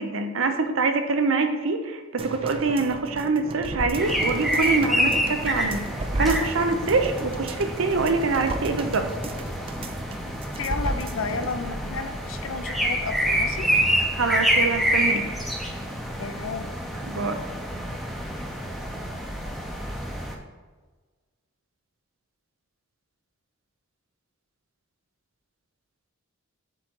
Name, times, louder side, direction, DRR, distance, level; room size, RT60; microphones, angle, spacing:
voice 1, 0.0-5.8 6.2-9.1 14.1-15.2 17.1-17.4, right 3 dB, 65° right, 6 dB, 0.7 m, -25 dB
sound 1, 2.2-11.6 12.0-12.1, right 2 dB, 25° right, 0.4 m, -34 dB
sound 2, 4.0-20.4, equal, ahead, 0.7 m, -27 dB
voice 2, 10.5-13.7 16.2-16.9, left 4 dB, 65° left, 8 dB, 0.6 m, -32 dB
7.7 x 3.8 x 4.5 m, 1.4 s
head